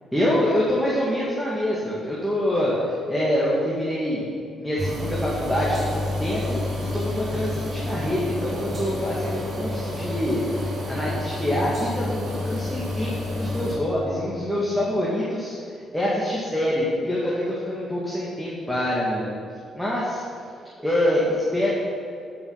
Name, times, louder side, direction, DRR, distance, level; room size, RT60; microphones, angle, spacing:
voice 1, 0.1-4.3 4.6-15.5 15.9-19.4 19.7-20.2 20.8-21.7, left 1 dB, ahead, -7 dB, 2.3 m, -25 dB
sound 1, 4.8-13.8, left 1 dB, 45° right, 2.8 m, -29 dB
11.0 x 6.2 x 5.8 m, 2.5 s
cardioid pair, 90°, 0 cm